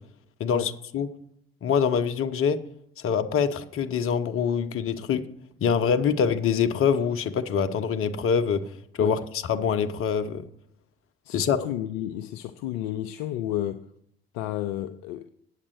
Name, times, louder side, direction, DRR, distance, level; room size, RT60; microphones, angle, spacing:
voice 1, 0.4-1.1 1.6-2.6 3.0-5.2 5.6-8.6 9.0-9.2 9.5-10.4 11.3-11.6, left 7 dB, 45° left, 0.9 m, -24 dB
voice 2, 11.2-13.9 14.3-15.3, left 12 dB, 65° left, 0.5 m, -32 dB
8.6 x 7.5 x 6.3 m
figure-of-eight pair, 55°, 30 cm